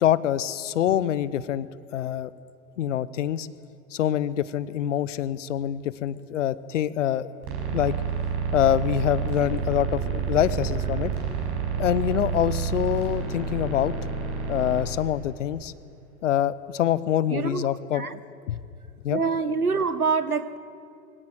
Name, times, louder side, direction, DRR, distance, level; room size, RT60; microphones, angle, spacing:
voice 1, 0.0-1.7 1.9-2.3 2.8-3.5 3.9-7.3 7.7-7.9 8.5-11.1 11.8-13.9 14.5-15.7 16.2-18.1 18.5-18.6 19.0-19.2, left 11 dB, 55° left, 17 dB, 1.0 m, -25 dB
sound 1, 7.4-14.8, right 6 dB, 45° right, 6.2 m, -29 dB
voice 2, 17.3-17.6 17.9-18.2 19.1-20.6, right 5 dB, 85° right, 14 dB, 1.1 m, -25 dB
23.0 x 16.5 x 9.2 m, 2.5 s
figure-of-eight pair, 95°, 43 cm